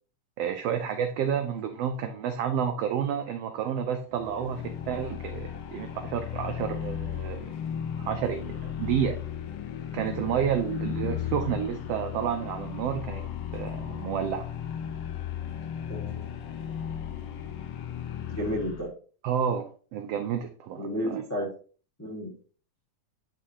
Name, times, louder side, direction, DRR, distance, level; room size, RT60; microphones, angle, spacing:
voice 1, 0.4-7.5 8.0-9.2 9.9-13.2 13.5-14.4 19.2-21.2, right 8 dB, 90° right, 6 dB, 1.3 m, -30 dB
sound 1, 4.1-18.9, left 9 dB, 85° left, 1.4 m, -35 dB
voice 2, 15.9-16.2 18.3-18.9 20.8-21.5 22.0-22.3, equal, 20° left, -3 dB, 0.4 m, -32 dB
10.0 x 3.7 x 2.8 m, 0.40 s
omnidirectional pair, 3.5 m